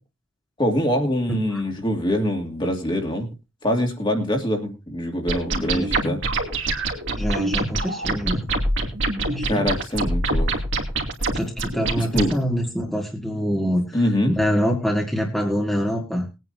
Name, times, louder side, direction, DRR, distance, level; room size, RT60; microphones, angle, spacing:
voice 1, 0.6-3.3 3.6-6.2 9.4-10.5 12.0-12.3 13.9-14.3, equal, 25° left, 2 dB, 2.4 m, -24 dB
voice 2, 1.3-1.6 5.7-5.9 7.2-8.4 9.3-9.7 11.3-14.0 14.3-16.3, equal, ahead, -1 dB, 2.0 m, -25 dB
sound 1, 5.3-12.3, right 2 dB, 60° right, 2.8 m, -25 dB
21.0 x 9.3 x 2.7 m, 0.28 s
head